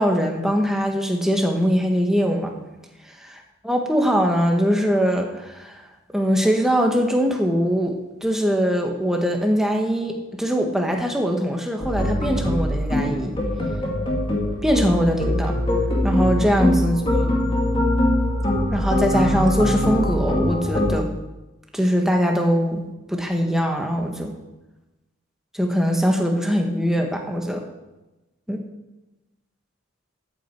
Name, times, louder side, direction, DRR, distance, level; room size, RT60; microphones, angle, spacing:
voice 1, 0.0-2.5 3.2-3.3 3.6-5.7 6.1-8.0 8.2-13.3 14.6-15.6 16.0-17.3 18.7-21.1 21.7-24.3 25.5-27.6 28.5-28.6, equal, ahead, 2 dB, 1.4 m, -22 dB
sound 1, 11.8-20.9, left 1 dB, 25° left, 2.3 m, -22 dB
13.5 x 8.8 x 4.5 m, 1.0 s
head